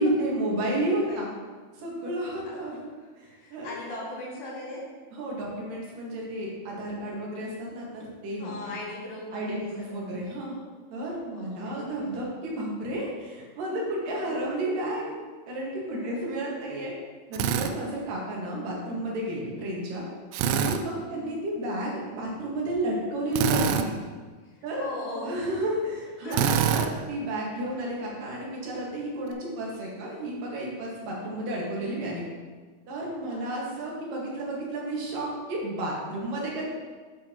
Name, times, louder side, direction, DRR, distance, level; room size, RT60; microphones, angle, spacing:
voice 1, 0.0-1.3 1.8-2.8 3.2-3.7 5.1-8.5 9.3-10.5 10.9-15.1 15.5-16.9 17.3-20.0 20.5-23.9 24.6-24.8 25.2-32.2 32.9-36.6, right 1 dB, 65° right, -3 dB, 3.3 m, -31 dB
voice 2, 3.0-4.8 8.4-10.2 11.3-11.9 14.0-14.3 15.8-16.2 21.0-21.4 24.4-25.5 26.0-26.6 33.2-33.9, left 2 dB, 80° left, -7 dB, 4.6 m, -40 dB
Drill, 17.3-17.7 20.3-20.8 23.3-23.9 26.3-26.9, right 8 dB, 80° right, 2.2 m, -24 dB
11.0 x 7.3 x 3.0 m, 1.4 s
omnidirectional pair, 4.3 m